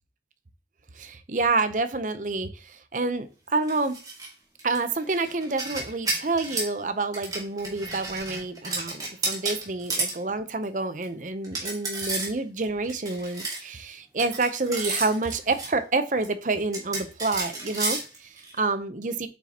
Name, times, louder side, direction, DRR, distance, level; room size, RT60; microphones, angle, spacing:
voice 1, 1.0-4.0 4.6-19.3, right 3 dB, 45° right, 0.7 m, -28 dB
sound 1, 3.6-4.3 4.6-6.7 7.1-10.2 10.6-10.7 11.0-11.1 11.4-12.3 12.6-13.6 14.2-15.7 16.2-16.3 16.7-18.6, right 3 dB, 20° right, 2.2 m, -32 dB
8.2 x 5.9 x 2.9 m
head